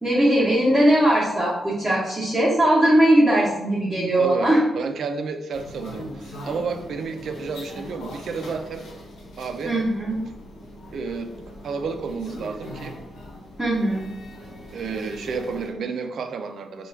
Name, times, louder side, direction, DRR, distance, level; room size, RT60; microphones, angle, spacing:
voice 1, 0.0-4.6 9.6-10.1 13.6-14.1, right 1 dB, 5° right, -8 dB, 0.7 m, -19 dB
voice 2, 4.2-8.9 9.4-9.7 10.9-11.3 11.6-13.0 14.7-16.9, right 5 dB, 55° right, 7 dB, 0.3 m, -31 dB
sound 1, 5.5-15.7, left 1 dB, 80° left, 1.0 m, -40 dB
4.4 x 2.2 x 3.2 m, 0.97 s
wide cardioid pair, 180°, 0 cm